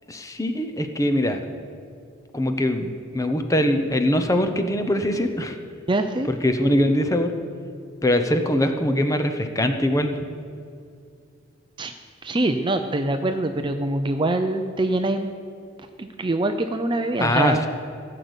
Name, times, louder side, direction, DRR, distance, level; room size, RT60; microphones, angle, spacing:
voice 1, 0.1-1.4 2.3-5.6 6.2-7.3 8.0-10.1 17.2-17.7, left 1 dB, 15° left, 7 dB, 0.8 m, -22 dB
voice 2, 5.9-6.3 11.8-11.9 12.2-15.3 16.0-17.7, right 2 dB, 20° right, 7 dB, 0.5 m, -24 dB
16.0 x 6.7 x 8.1 m, 2.4 s
head